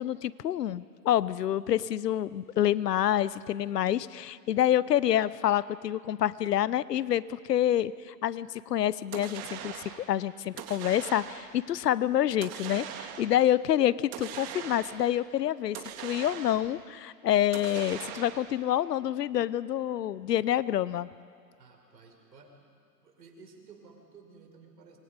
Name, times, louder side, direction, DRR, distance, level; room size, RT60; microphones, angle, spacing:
voice 1, 0.0-21.1, left 11 dB, 80° left, 19 dB, 0.9 m, -27 dB
sound 1, 9.1-10.1 10.6-11.6 12.4-13.5 14.1-15.2 15.7-16.8 17.5-18.6, right 9 dB, 30° right, 1.9 m, -41 dB
voice 2, 21.6-22.7 23.0-25.0, right 4 dB, 85° right, 2 dB, 5.6 m, -54 dB
29.0 x 25.5 x 5.3 m, 2.2 s
hypercardioid pair, 125°, 48 cm